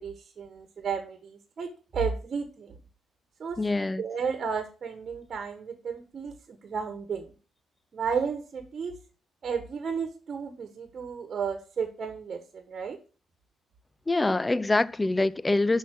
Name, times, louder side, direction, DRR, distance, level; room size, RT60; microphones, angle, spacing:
voice 1, 0.0-2.7 3.4-3.6 4.0-7.3 7.9-8.9 9.4-13.0, right 6 dB, 45° right, 1.4 m, -33 dB
voice 2, 3.6-4.0 14.1-15.8, left 2 dB, 15° left, 0.4 m, -25 dB
6.2 x 5.6 x 5.9 m
cardioid pair, 90°, 0 cm